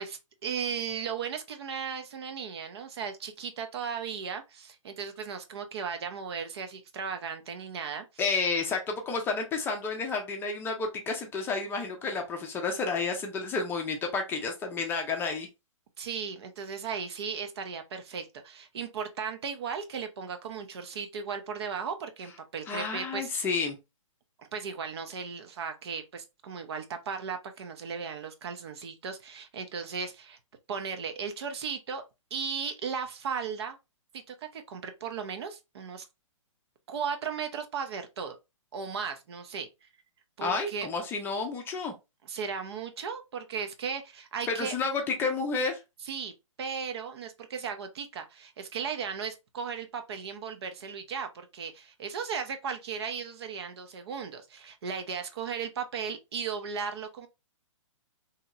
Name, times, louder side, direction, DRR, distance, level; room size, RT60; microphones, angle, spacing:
voice 1, 0.0-8.1 16.0-23.5 24.4-30.4 30.7-32.0 32.3-33.8 34.3-36.1 36.9-38.4 38.7-39.7 40.4-40.9 42.2-44.7 46.0-46.3 46.6-57.3, right 6 dB, 55° right, 0.6 m, -36 dB
voice 2, 8.2-15.5 22.7-23.8 40.4-41.9 44.5-45.8, left 4 dB, 15° left, 0.5 m, -30 dB
2.8 x 2.8 x 2.4 m
hypercardioid pair, 135°, 17 cm